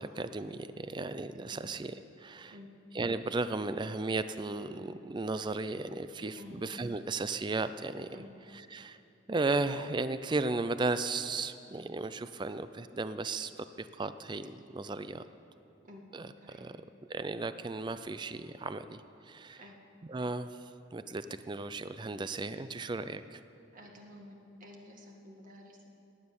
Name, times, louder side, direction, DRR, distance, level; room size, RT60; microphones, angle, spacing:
voice 1, 0.0-2.5 2.9-8.1 8.5-9.0 9.3-15.2 16.1-16.8 17.1-19.6 20.1-23.4, right 3 dB, 25° right, 12 dB, 0.4 m, -35 dB
voice 2, 23.7-25.9, left 1 dB, 45° right, 0 dB, 1.9 m, -51 dB
17.5 x 9.7 x 7.0 m, 2.8 s
head